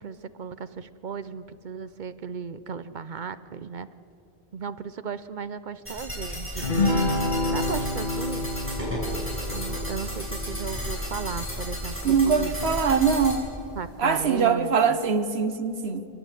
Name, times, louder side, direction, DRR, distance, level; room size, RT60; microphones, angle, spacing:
voice 1, 0.0-3.9 4.5-6.7 7.5-8.5 9.5-12.8 13.8-15.0, right 6 dB, 55° right, 13 dB, 0.8 m, -36 dB
sound 1, 5.9-13.4, equal, 10° right, 5.9 m, -33 dB
sound 2, 6.6-12.3, left 2 dB, 50° left, 1.8 m, -29 dB
voice 2, 12.0-13.5 14.0-16.0, right 6 dB, 85° right, 9 dB, 1.4 m, -23 dB
28.5 x 10.0 x 9.2 m, 2.8 s
omnidirectional pair, 1.0 m